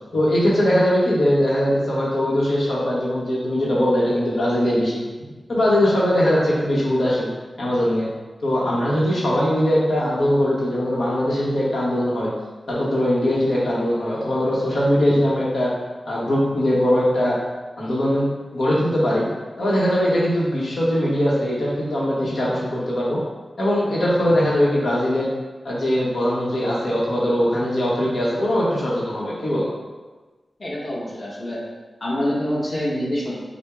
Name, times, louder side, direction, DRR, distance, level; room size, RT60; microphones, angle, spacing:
voice 1, 0.1-5.0 5.5-7.3 7.6-8.1 8.4-12.3 12.7-15.7 16.0-17.4 17.8-19.2 19.6-23.2 23.6-25.3 25.6-29.7, equal, 80° left, -6 dB, 1.0 m, -21 dB
voice 2, 30.6-31.6 32.0-33.4, equal, 45° left, -5 dB, 1.2 m, -26 dB
6.1 x 2.1 x 3.6 m, 1.3 s
cardioid pair, 60°, 0 cm